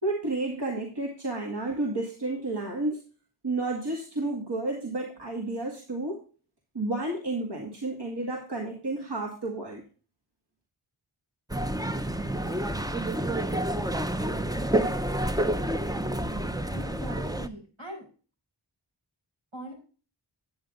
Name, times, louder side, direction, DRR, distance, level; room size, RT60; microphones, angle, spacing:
voice 1, 0.0-3.0 3.4-6.2 6.7-9.8, right 2 dB, 55° right, -1 dB, 2.1 m, -31 dB
sound 1, 11.5-17.5, right 1 dB, 10° right, 0.7 m, -29 dB
voice 2, 16.7-18.1 19.5-19.7, right 1 dB, 80° right, -1 dB, 6.0 m, -41 dB
10.0 x 8.6 x 3.7 m, 0.37 s
wide cardioid pair, 45°, 48 cm